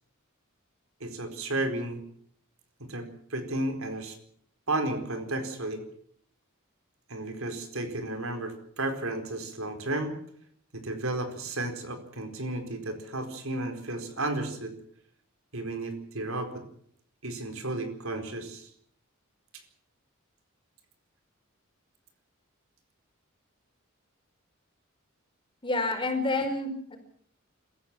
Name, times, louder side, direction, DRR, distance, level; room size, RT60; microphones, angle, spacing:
voice 1, 1.0-2.0 2.9-4.2 4.7-5.8 7.1-10.2 10.7-14.7 15.5-16.6 17.2-18.7, right 2 dB, 75° right, 6 dB, 4.4 m, -33 dB
voice 2, 25.6-27.0, left 2 dB, 25° left, 5 dB, 4.9 m, -28 dB
26.5 x 15.0 x 7.4 m, 0.63 s
head